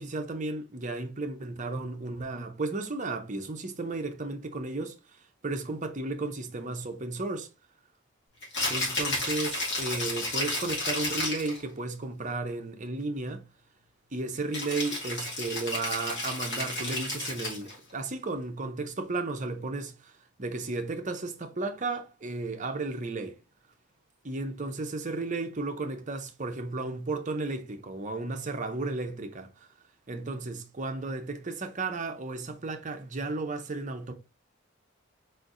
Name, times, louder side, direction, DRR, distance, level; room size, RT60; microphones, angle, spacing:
voice 1, 0.0-4.9 5.4-7.5 8.7-13.4 14.1-20.1 20.4-23.4 24.2-29.5 30.1-34.1, right 3 dB, 35° right, 0.7 m, -34 dB
Rattle (instrument), 8.4-11.6 14.5-17.8, left 2 dB, 55° left, 2.4 m, -32 dB
4.5 x 4.5 x 2.5 m
head